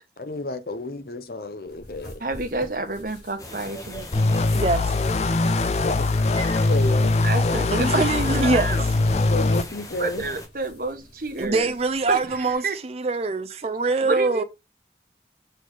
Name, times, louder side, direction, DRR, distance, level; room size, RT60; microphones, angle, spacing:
voice 1, 0.2-2.2 5.8-6.1 6.6-7.1 9.3-10.2, left 2 dB, 55° left, 0.8 m, -31 dB
sound 1, 1.7-12.5, equal, 75° left, 3.2 m, -46 dB
voice 2, 2.2-4.4 6.6-6.7 7.2-8.8 10.0-11.7 12.1-12.8 14.0-14.4, right 2 dB, 50° right, 1.0 m, -29 dB
sound 2, 3.4-10.5, left 1 dB, 20° left, 1.0 m, -39 dB
sound 3, 4.1-9.6, left 2 dB, 40° left, 0.4 m, -22 dB
voice 3, 4.5-4.9 7.7-8.7 11.4-14.4, right 3 dB, 35° right, 0.5 m, -23 dB
6.7 x 4.0 x 4.8 m
head